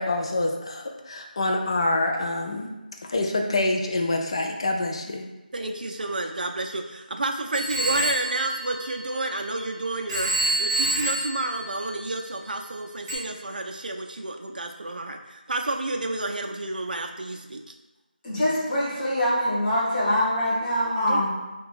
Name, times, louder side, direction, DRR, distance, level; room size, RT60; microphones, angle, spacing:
voice 1, 0.0-2.7 3.1-5.3, left 2 dB, 35° left, 3 dB, 0.3 m, -26 dB
voice 2, 5.5-17.7 21.1-21.3, right 2 dB, 65° right, 4 dB, 0.4 m, -30 dB
Telephone, 7.5-9.6 10.1-12.4 13.1-13.2, right 1 dB, 25° right, 0.7 m, -28 dB
voice 3, 18.2-21.3, equal, 15° left, -13 dB, 0.9 m, -24 dB
2.7 x 2.3 x 4.0 m, 1.1 s
figure-of-eight pair, 170°, 5 cm